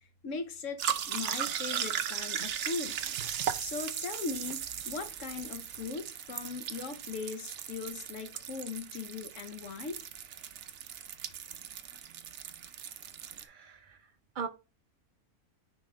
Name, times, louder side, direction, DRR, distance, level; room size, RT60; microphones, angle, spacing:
voice 1, 0.2-3.0 3.6-10.0, left 4 dB, 60° left, 1.1 m, -39 dB
sound 1, 0.8-13.4, right 9 dB, 60° right, 0.9 m, -37 dB
voice 2, 13.4-14.0 14.4-14.5, right 5 dB, 80° right, 0.4 m, -39 dB
9.7 x 3.5 x 3.2 m
omnidirectional pair, 1.6 m